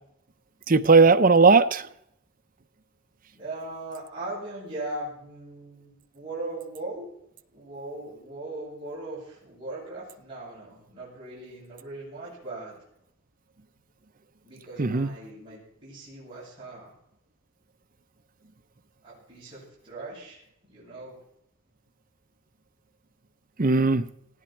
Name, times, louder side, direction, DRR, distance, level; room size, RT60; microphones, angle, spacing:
voice 1, 0.7-1.9 14.8-15.1 23.6-24.1, right 4 dB, 40° right, 0.7 m, -18 dB
voice 2, 3.3-7.1 7.5-12.8 14.4-16.9 19.0-20.4 20.7-21.2, right 2 dB, 25° right, 8.0 m, -39 dB
19.0 x 15.0 x 4.5 m
head